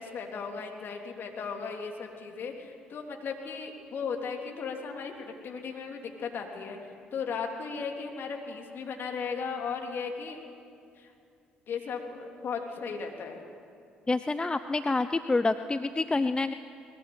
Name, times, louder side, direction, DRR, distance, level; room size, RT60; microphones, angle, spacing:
voice 1, 0.0-6.8 7.1-10.4 11.0-11.1 11.7-13.4, left 5 dB, 50° left, 2 dB, 3.4 m, -36 dB
voice 2, 14.1-16.5, left 3 dB, 20° left, 11 dB, 0.8 m, -27 dB
22.5 x 21.0 x 9.0 m, 2.5 s
hypercardioid pair, 50°, 5 cm